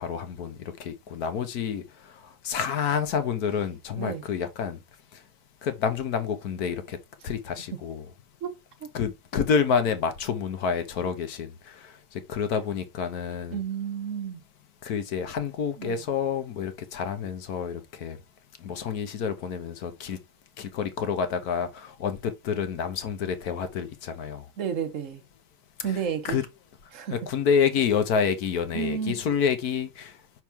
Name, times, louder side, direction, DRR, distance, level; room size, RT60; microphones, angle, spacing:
voice 1, 0.0-4.8 5.1-5.3 5.6-7.0 7.2-8.1 8.9-13.6 14.8-18.2 18.6-20.2 20.6-24.5 26.2-26.4 27.1-30.3, left 6 dB, 60° left, 1.3 m, -28 dB
voice 2, 8.4-8.9 13.5-14.4 15.8-16.0 24.6-25.2 25.8-26.4 26.9-27.2 28.7-29.2, right 7 dB, 50° right, 1.0 m, -31 dB
5.8 x 4.6 x 3.5 m
omnidirectional pair, 2.1 m